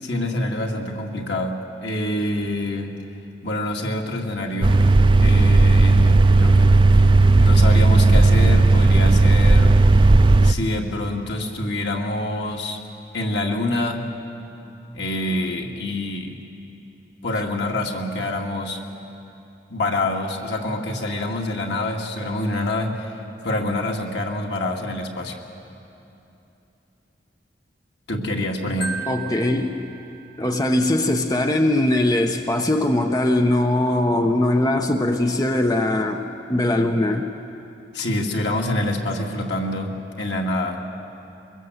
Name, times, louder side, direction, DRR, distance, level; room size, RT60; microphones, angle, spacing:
voice 1, 0.0-3.0 3.4-4.9 5.2-6.8 7.3-9.7 10.4-12.8 13.1-14.1 14.9-16.4 17.2-18.8 19.7-23.1 23.4-25.4 28.1-29.0 37.9-40.8, left 1 dB, 80° left, 1 dB, 2.2 m, -26 dB
sound 1, 4.6-10.5, right 2 dB, 30° right, 0.4 m, -14 dB
Marimba xylophone, 28.8-30.9, right 5 dB, 60° left, 1.2 m, -36 dB
voice 2, 29.1-29.9 30.4-36.2 36.5-37.3, left 1 dB, 20° left, 4 dB, 0.9 m, -21 dB
23.5 x 21.5 x 8.0 m, 2.9 s
head